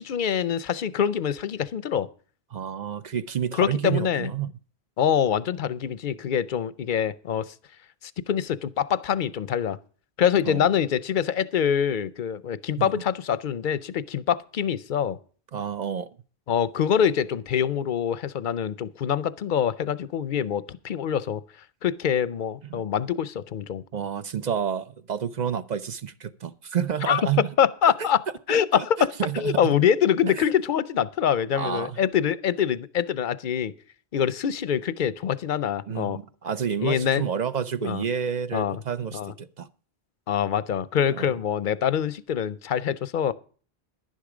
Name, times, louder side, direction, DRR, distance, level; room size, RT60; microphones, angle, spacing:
voice 1, 0.0-2.1 3.6-4.3 5.0-7.5 8.3-9.8 10.2-15.2 16.5-21.4 21.8-23.8 27.1-27.2 27.6-28.2 28.5-33.7 34.1-36.2 36.8-37.2 37.8-38.0 38.5-38.8 39.1-39.3 40.3-43.3, left 8 dB, 55° left, 0.7 m, -25 dB
voice 2, 2.5-4.5 10.4-10.7 12.8-12.9 15.5-16.1 22.7-22.8 23.9-27.5 27.8-28.1 28.5-29.8 30.3-30.5 31.5-32.0 35.9-39.7 41.1-41.3, right 8 dB, 50° right, 0.7 m, -29 dB
11.0 x 10.5 x 5.0 m
omnidirectional pair, 1.1 m